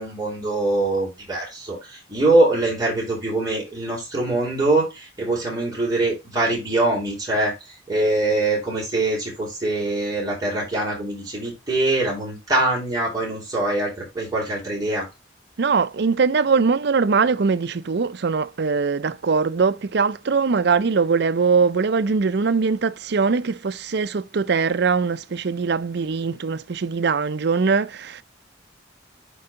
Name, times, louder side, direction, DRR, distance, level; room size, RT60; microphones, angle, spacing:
voice 1, 0.0-15.1, right 2 dB, 20° right, 4.2 m, -23 dB
voice 2, 15.6-28.2, right 5 dB, 65° right, 0.5 m, -21 dB
10.0 x 3.9 x 3.7 m
head